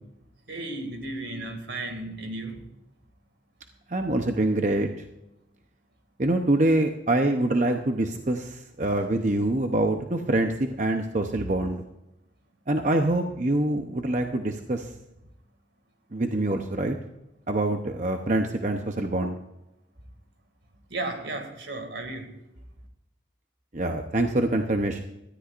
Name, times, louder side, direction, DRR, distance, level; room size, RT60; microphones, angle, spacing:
voice 1, 0.5-2.7 20.9-22.4, right 2 dB, 80° right, 2.3 m, -34 dB
voice 2, 3.9-4.9 6.2-11.8 12.7-14.9 16.1-17.0 17.5-19.4 23.7-25.0, right 1 dB, 40° right, 0.8 m, -25 dB
18.0 x 13.5 x 2.5 m
head